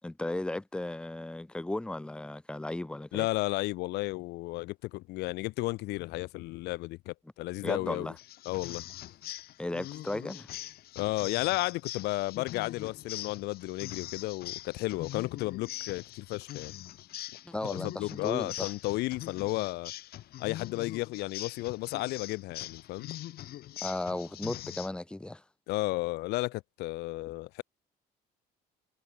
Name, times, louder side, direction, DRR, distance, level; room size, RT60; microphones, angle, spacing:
voice 1, 0.0-3.3 7.6-8.1 9.6-10.5 17.4-18.7 23.8-25.4, left 2 dB, 5° left, 0.7 m, -35 dB
voice 2, 3.1-8.1 8.5-8.8 11.0-16.7 17.6-19.9 20.4-23.1 25.7-27.6, left 20 dB, 85° left, 0.5 m, -33 dB
sound 1, 8.2-24.9, left 14 dB, 65° left, 1.1 m, -42 dB
cardioid pair, 110°, 17 cm